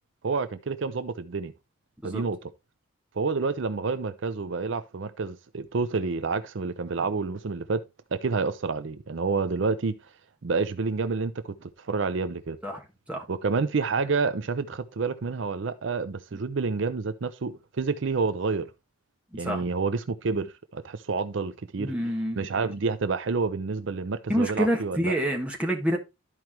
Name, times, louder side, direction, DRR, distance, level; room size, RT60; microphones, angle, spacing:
voice 1, 0.2-1.5 2.0-2.5 3.2-7.8 8.1-9.9 10.4-12.6 13.3-18.7 19.3-21.9 22.3-25.1, right 4 dB, 65° right, 0.5 m, -29 dB
voice 2, 19.3-19.6 21.8-22.4 24.3-26.0, equal, 5° right, 1.4 m, -27 dB
12.5 x 4.7 x 2.9 m
head